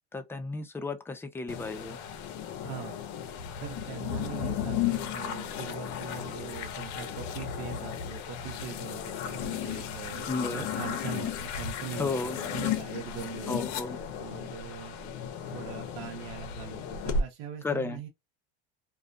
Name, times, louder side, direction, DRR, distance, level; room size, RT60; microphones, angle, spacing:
voice 1, 0.1-2.0 10.3-10.7 12.0-12.4 13.5-14.0 17.6-18.0, left 3 dB, 5° left, 0.4 m, -33 dB
sound 1, 1.5-17.2, left 7 dB, 60° left, 0.6 m, -34 dB
voice 2, 2.6-3.0 3.6-13.6 14.2-18.1, right 9 dB, 70° right, 0.7 m, -42 dB
2.3 x 2.2 x 2.5 m
hypercardioid pair, 95°, 33 cm